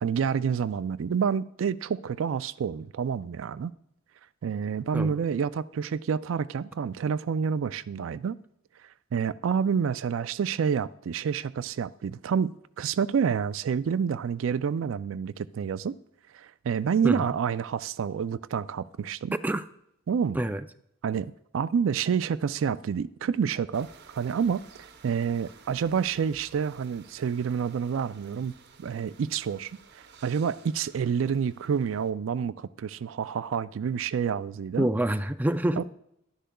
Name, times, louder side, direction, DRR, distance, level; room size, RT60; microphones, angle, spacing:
voice 1, 0.0-3.7 4.4-8.4 9.1-16.0 16.3-19.3 20.1-20.4 21.0-23.9 24.2-28.5 28.8-34.9 35.8-35.9, right 7 dB, 85° right, 0.4 m, -28 dB
voice 2, 20.3-20.6 34.8-35.8, right 1 dB, 10° right, 0.3 m, -26 dB
sound 1, 23.7-32.1, right 5 dB, 60° right, 0.8 m, -54 dB
11.5 x 10.0 x 2.3 m
head